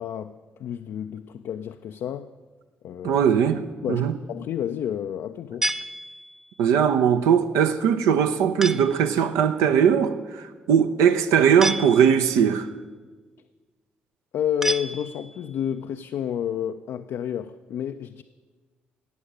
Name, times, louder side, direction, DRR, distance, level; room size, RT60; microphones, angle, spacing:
voice 1, 0.0-2.3 2.8-3.2 3.8-5.7 14.3-18.2, left 9 dB, 55° left, 0.4 m, -30 dB
voice 2, 3.0-3.6 3.9-4.2 6.6-12.7, right 8 dB, 65° right, 0.6 m, -20 dB
sound 1, 5.6-6.6 8.6-9.1 11.6-12.4 14.6-15.5, right 1 dB, 10° right, 0.4 m, -30 dB
14.0 x 8.6 x 6.1 m
figure-of-eight pair, 40°, 6 cm